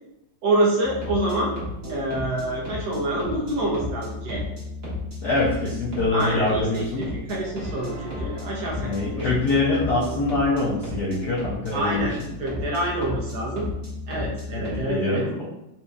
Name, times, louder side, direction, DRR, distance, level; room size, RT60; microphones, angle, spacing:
voice 1, 0.4-1.5 1.9-4.4 6.1-9.3 11.7-13.7 14.1-15.2, right 1 dB, 75° right, -3 dB, 0.8 m, -27 dB
sound 1, 0.8-14.9, left 2 dB, 45° right, 1.3 m, -34 dB
voice 2, 5.2-7.1 8.8-12.1 14.5-15.3, left 2 dB, 70° left, -6 dB, 1.0 m, -24 dB
4.2 x 2.6 x 2.3 m, 0.88 s
omnidirectional pair, 2.2 m